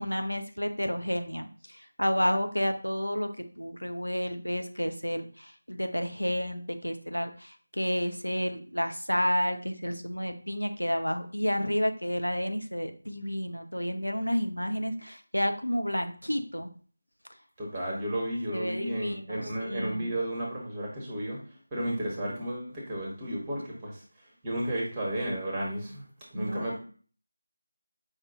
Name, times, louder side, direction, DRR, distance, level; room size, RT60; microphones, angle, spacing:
voice 1, 0.0-16.7 18.5-20.1 26.3-26.8, equal, 85° left, 6 dB, 0.5 m, -31 dB
voice 2, 17.6-26.1 26.3-26.8, right 1 dB, 15° right, -3 dB, 0.9 m, -33 dB
4.9 x 2.2 x 2.7 m, 0.42 s
figure-of-eight pair, 165°, 0 cm